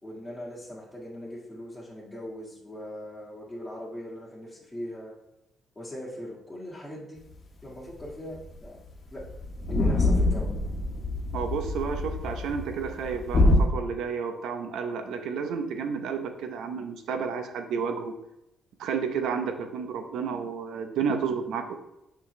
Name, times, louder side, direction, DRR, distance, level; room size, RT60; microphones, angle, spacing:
voice 1, 0.0-5.1 5.8-7.2 7.6-8.8 9.0-9.3 9.7-10.5, left 1 dB, 5° left, -9 dB, 1.8 m, -40 dB
sound 1, 8.0-8.1 8.4-8.6 8.9-9.0 9.2-13.7, left 2 dB, 45° left, 1.1 m, -25 dB
voice 2, 11.3-18.1 18.8-21.7, right 6 dB, 80° right, 6 dB, 0.8 m, -31 dB
6.0 x 5.6 x 3.2 m, 0.87 s
cardioid pair, 90°, 0 cm